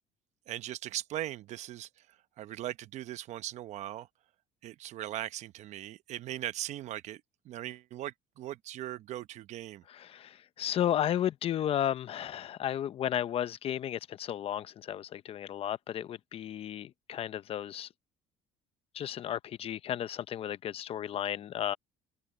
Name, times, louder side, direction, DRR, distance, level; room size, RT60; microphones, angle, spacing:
voice 1, 0.5-4.1 4.6-9.8, right 13 dB, 60° right, 0.9 m, -39 dB
voice 2, 9.9-17.9 18.9-21.8, left 10 dB, 45° left, 0.8 m, -33 dB
open air
cardioid pair, 115°, 13 cm